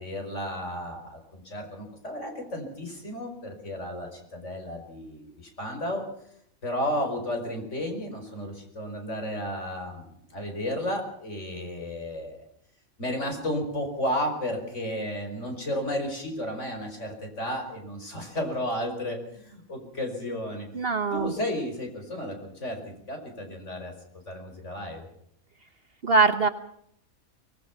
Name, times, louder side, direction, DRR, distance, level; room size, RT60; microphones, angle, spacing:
voice 1, 0.0-6.1 6.6-12.4 13.0-20.7 21.1-25.1, left 1 dB, 55° left, 3 dB, 5.4 m, -33 dB
voice 2, 20.7-21.3 26.0-26.5, right 4 dB, 45° right, 10 dB, 1.2 m, -22 dB
24.5 x 19.0 x 5.9 m, 0.70 s
omnidirectional pair, 1.5 m